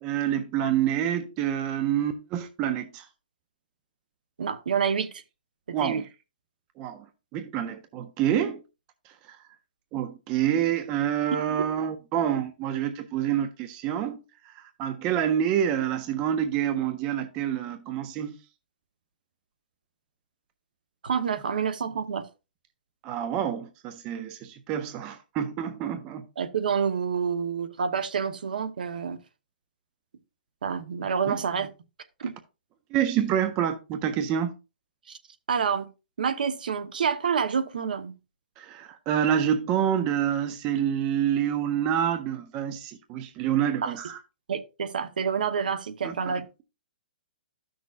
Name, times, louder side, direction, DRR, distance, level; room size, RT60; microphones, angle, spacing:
voice 1, 0.0-3.1 5.7-6.1 6.8-7.1 7.3-8.6 9.1-9.4 9.9-18.4 23.0-26.3 31.3-31.4 32.9-34.5 38.6-44.2 46.0-46.3, right 9 dB, 15° right, 0.3 m, -27 dB
voice 2, 4.4-5.1 5.7-6.0 11.6-11.7 21.0-22.2 26.4-29.2 30.6-31.7 32.2-32.3 35.1-35.2 35.5-35.9 36.2-38.1 43.8-43.9 44.5-46.5, right 6 dB, 65° right, 0.9 m, -28 dB
13.0 x 6.1 x 2.4 m
hypercardioid pair, 180°, 5 cm